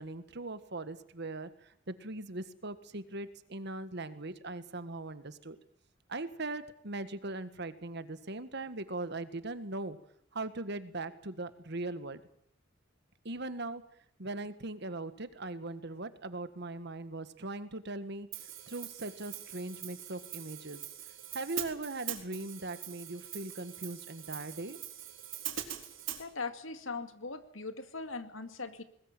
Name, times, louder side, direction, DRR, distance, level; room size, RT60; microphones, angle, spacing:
voice 1, 0.0-5.6 6.1-10.0 10.3-12.2 13.2-13.8 14.2-18.3 18.7-20.8 21.3-24.8, right 2 dB, 60° right, 12 dB, 1.7 m, -40 dB
Hi-hat, 18.3-26.2, right 11 dB, 85° right, 3.9 m, -43 dB
voice 2, 26.2-28.8, left 4 dB, 90° left, 9 dB, 2.2 m, -40 dB
20.5 x 20.5 x 9.0 m, 0.66 s
head